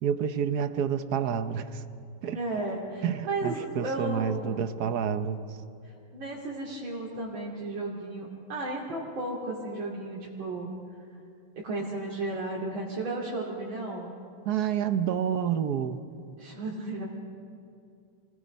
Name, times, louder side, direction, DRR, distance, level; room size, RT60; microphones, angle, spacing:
voice 1, 0.0-1.8 2.2-2.4 3.0-5.4 14.5-16.0, right 8 dB, 60° right, 11 dB, 1.2 m, -29 dB
voice 2, 2.3-4.7 6.1-10.7 11.6-14.1 16.4-17.0, right 2 dB, 85° right, -5 dB, 3.5 m, -34 dB
29.0 x 19.5 x 5.4 m, 2.5 s
omnidirectional pair, 2.1 m